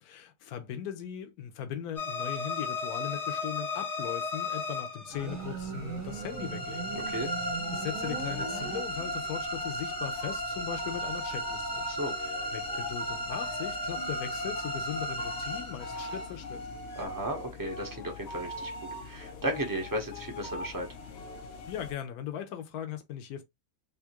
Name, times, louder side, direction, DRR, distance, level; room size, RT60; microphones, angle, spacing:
voice 1, 0.0-7.4 7.7-11.8 12.2-16.6 21.7-23.4, left 10 dB, 65° left, 1.2 m, -39 dB
sound 1, 2.0-17.0, left 1 dB, 35° left, 0.5 m, -35 dB
sound 2, 5.1-21.9, left 2 dB, 85° left, 0.5 m, -44 dB
Motorcycle, 5.1-9.4, right 6 dB, 60° right, 1.1 m, -40 dB
voice 2, 6.9-7.3 11.9-12.1 16.9-18.7 19.0-20.9, right 1 dB, 15° right, 0.7 m, -34 dB
3.6 x 2.8 x 2.9 m
omnidirectional pair, 1.8 m